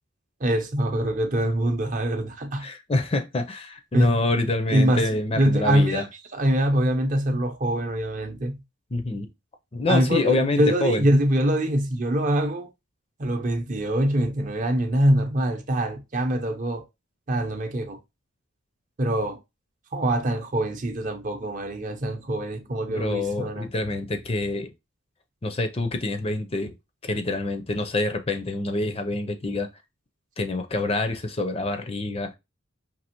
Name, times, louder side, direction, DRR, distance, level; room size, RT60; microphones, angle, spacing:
voice 1, 0.4-2.7 3.9-4.2 4.7-6.0 6.3-8.6 9.9-12.7 13.2-16.9 17.3-18.0 19.0-19.4 19.9-23.7, right 1 dB, 40° right, 0.6 m, -24 dB
voice 2, 2.6-6.0 8.9-9.3 9.7-11.0 22.9-24.7 25.4-26.7 27.0-29.7 30.4-32.3, left 2 dB, 30° left, 0.5 m, -26 dB
5.2 x 2.9 x 2.9 m
head